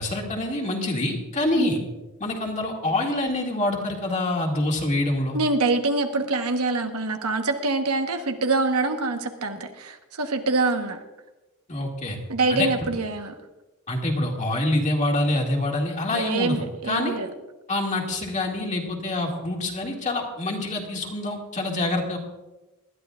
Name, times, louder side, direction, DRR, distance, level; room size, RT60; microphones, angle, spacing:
voice 1, 0.0-1.8 2.2-5.4 11.7-12.2 12.5-12.9 13.9-17.2 17.7-22.2, left 2 dB, 35° left, 0 dB, 2.2 m, -26 dB
voice 2, 5.3-11.0 12.3-13.3 16.1-17.3, right 3 dB, 80° right, 5 dB, 1.2 m, -25 dB
20.0 x 12.5 x 2.5 m, 1.1 s
head